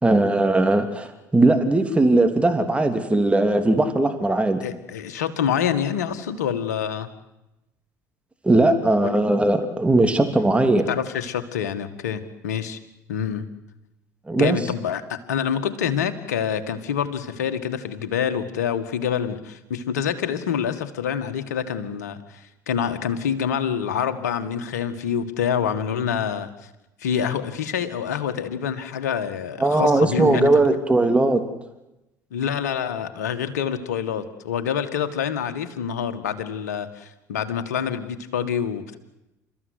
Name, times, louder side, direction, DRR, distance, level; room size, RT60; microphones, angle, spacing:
voice 1, 0.0-4.6 8.4-10.9 14.3-14.6 29.6-31.4, right 2 dB, 15° right, 7 dB, 2.9 m, -19 dB
voice 2, 4.6-7.1 9.0-9.2 10.9-12.8 13.1-13.4 14.4-26.7 27.0-30.5 32.3-39.0, left 8 dB, 75° left, 10 dB, 1.9 m, -26 dB
29.5 x 14.5 x 9.7 m, 0.94 s
figure-of-eight pair, 60°, 9 cm